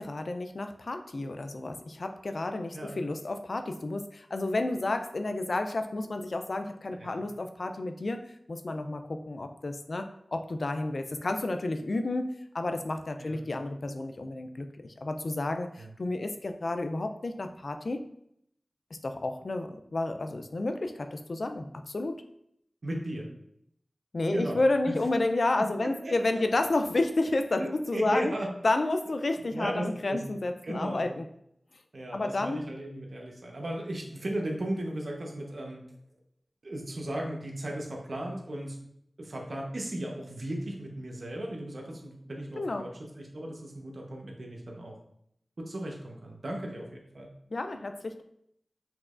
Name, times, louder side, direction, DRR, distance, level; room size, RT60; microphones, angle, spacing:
voice 1, 0.0-15.7 16.0-18.0 19.0-21.7 21.9-22.2 24.1-28.3 28.6-31.2 32.1-32.6 42.6-42.9 47.5-48.2, left 2 dB, 75° left, 7 dB, 0.4 m, -31 dB
voice 2, 22.8-23.3 24.3-25.0 25.6-26.5 27.5-28.5 29.5-30.2 30.6-31.1 31.9-35.8 36.6-38.8 39.2-42.9 43.2-45.0 45.6-47.3, right 1 dB, 75° right, -1 dB, 0.9 m, -36 dB
6.0 x 3.0 x 2.5 m, 0.73 s
cardioid pair, 40°, 0 cm